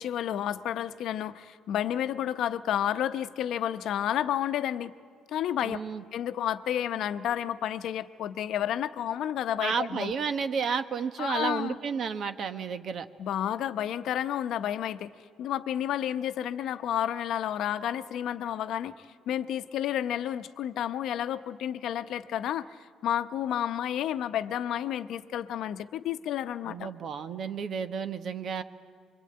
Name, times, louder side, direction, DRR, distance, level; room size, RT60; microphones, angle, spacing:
voice 1, 0.0-4.9 5.3-5.8 6.1-10.1 11.2-11.8 13.2-15.1 15.4-22.8 23.0-26.9, left 10 dB, 70° left, 11 dB, 0.8 m, -31 dB
voice 2, 5.6-6.0 9.6-13.1 26.6-28.6, right 6 dB, 55° right, 10 dB, 1.1 m, -32 dB
25.0 x 22.5 x 8.7 m, 2.1 s
cardioid pair, 100°, 0 cm